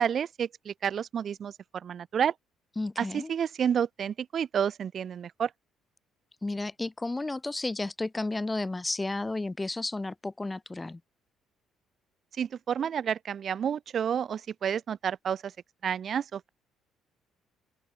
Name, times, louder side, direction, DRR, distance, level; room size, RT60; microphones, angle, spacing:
voice 1, 0.0-2.3 3.0-5.5 12.4-15.5 15.8-16.5, right 8 dB, 45° right, 0.3 m, -30 dB
voice 2, 2.8-3.3 6.4-11.0, left 2 dB, 15° left, 0.6 m, -32 dB
open air
cardioid pair, 125°, 0 cm